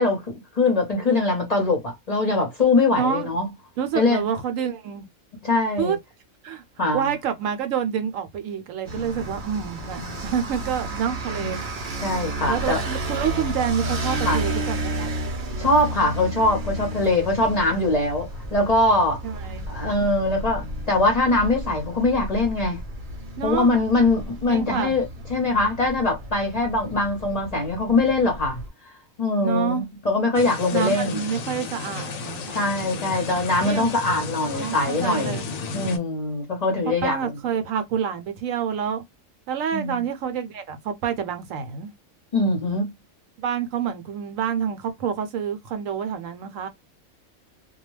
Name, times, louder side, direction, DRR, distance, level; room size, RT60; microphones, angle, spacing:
voice 1, 0.0-3.5 3.9-4.2 5.4-6.0 6.8-7.1 11.4-11.6 12.0-12.8 14.2-14.4 15.6-19.2 19.7-22.8 23.4-25.0 25.3-28.6 29.2-31.2 32.5-35.4 35.7-37.2 39.7-40.0 42.3-42.9, left 2 dB, 40° left, 0.7 m, -22 dB
voice 2, 3.0-3.3 3.8-5.1 5.8-6.0 6.4-6.6 6.9-11.8 12.5-15.1 19.2-19.7 23.4-23.7 24.5-24.9 29.4-29.9 30.7-32.6 33.6-34.0 34.5-35.4 36.9-39.0 39.5-41.9 43.4-46.7, right 8 dB, 75° right, 0.9 m, -28 dB
sound 1, 8.8-28.7, right 1 dB, 45° right, 0.8 m, -32 dB
sound 2, 30.3-36.0, left 3 dB, 80° left, 1.0 m, -33 dB
2.3 x 2.2 x 3.1 m
omnidirectional pair, 1.4 m